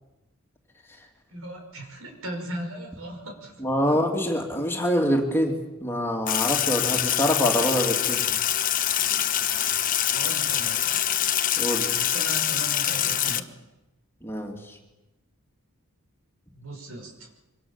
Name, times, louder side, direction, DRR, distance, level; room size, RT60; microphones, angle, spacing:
voice 1, 1.3-3.6 3.9-4.0 10.0-11.0 11.9-13.4 16.5-17.3, right 1 dB, 70° right, 3 dB, 5.7 m, -38 dB
voice 2, 3.6-8.2 11.6-11.9 14.2-14.8, equal, 10° left, 1 dB, 3.0 m, -25 dB
Sink (filling or washing), 6.3-13.4, left 11 dB, 40° left, 1.1 m, -25 dB
26.0 x 25.0 x 7.4 m, 1.0 s
head